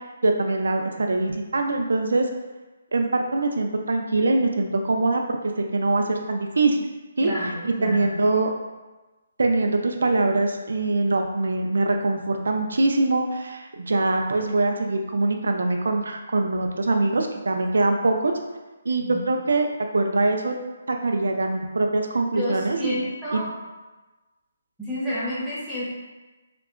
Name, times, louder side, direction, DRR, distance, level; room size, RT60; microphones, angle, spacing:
voice 1, 0.2-2.3 2.9-6.8 7.2-8.5 9.4-18.3 18.9-20.5 20.9-23.0 23.3-23.4, right 2 dB, 85° right, 3 dB, 0.3 m, -23 dB
voice 2, 7.2-8.2 19.0-19.1 22.3-23.5 24.8-25.8, left 1 dB, ahead, -12 dB, 0.5 m, -30 dB
2.7 x 2.2 x 2.4 m, 1.2 s
hypercardioid pair, 175°, 0 cm